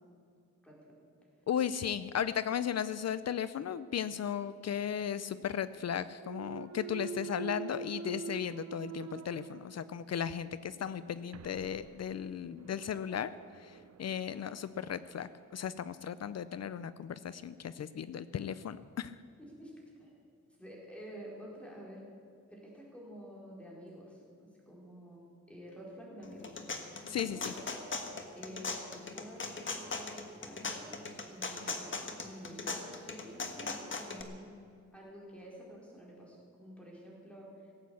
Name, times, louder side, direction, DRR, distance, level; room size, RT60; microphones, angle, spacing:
voice 1, 0.6-0.9 19.6-19.7 20.0-20.1 20.6-22.0 22.5-26.5 27.2-27.8 28.3-30.9 31.3-31.9 32.2-34.5 34.9-37.7, equal, 5° left, -4 dB, 4.7 m, -49 dB
voice 2, 1.5-13.3 13.6-19.1 27.1-27.5, left 8 dB, 60° left, 15 dB, 0.5 m, -36 dB
Thump thud, 6.2-10.2 10.7-15.3, right 7 dB, 55° right, 0.6 m, -46 dB
sound 1, 26.2-34.2, left 4 dB, 40° left, 1.5 m, -39 dB
17.5 x 8.3 x 8.4 m, 2.4 s
wide cardioid pair, 115°, 30 cm